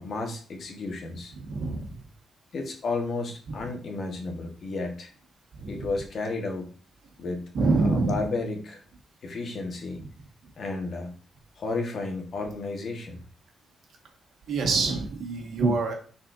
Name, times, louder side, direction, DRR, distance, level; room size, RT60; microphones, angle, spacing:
voice 1, 0.0-1.3 2.5-5.1 5.7-6.7 7.2-7.5 7.8-8.8 9.2-10.0 10.6-11.1 11.6-13.2, left 3 dB, 50° left, 2 dB, 1.4 m, -32 dB
voice 2, 1.4-1.9 3.5-3.6 5.5-5.9 7.5-8.2 14.5-15.9, right 3 dB, 70° right, 2 dB, 1.5 m, -26 dB
10.0 x 4.3 x 2.6 m, 0.40 s
cardioid pair, 140°, 0 cm